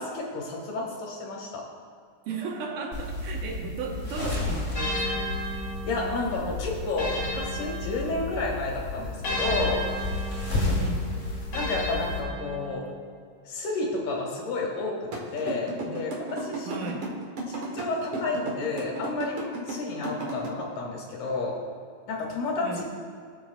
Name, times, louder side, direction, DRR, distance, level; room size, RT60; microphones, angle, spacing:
voice 1, 0.0-1.6 5.8-9.8 11.5-12.8 13.5-16.8 17.5-21.6 22.1-22.8, left 3 dB, 75° left, -1 dB, 2.9 m, -31 dB
voice 2, 2.3-5.3 10.5-11.1 15.9-16.0 16.7-17.1 22.6-22.9, right 4 dB, 80° right, 1 dB, 2.6 m, -35 dB
sound 1, 2.9-12.2, left 2 dB, 30° left, 1.6 m, -32 dB
sound 2, 4.7-8.5 9.2-12.9, left 1 dB, 60° left, 3.2 m, -34 dB
sound 3, 15.1-20.5, right 3 dB, 55° right, 1.8 m, -33 dB
18.5 x 6.2 x 2.3 m, 2.1 s
omnidirectional pair, 3.7 m